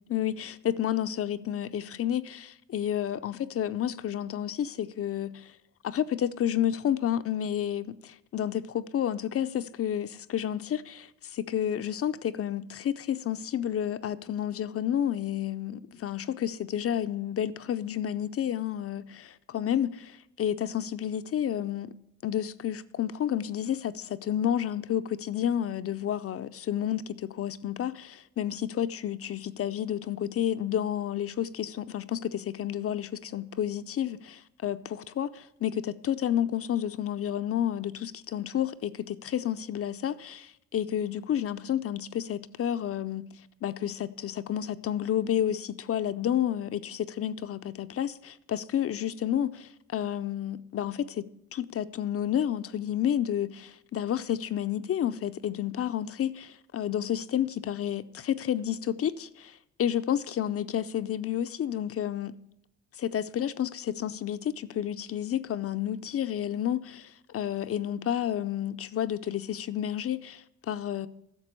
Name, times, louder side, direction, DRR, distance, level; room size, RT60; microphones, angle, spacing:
voice 1, 0.1-5.5 5.8-21.9 22.2-43.2 43.6-62.3 63.0-71.1, left 10 dB, 50° left, 0.6 m, -30 dB
10.5 x 6.8 x 6.7 m
cardioid pair, 90°, 30 cm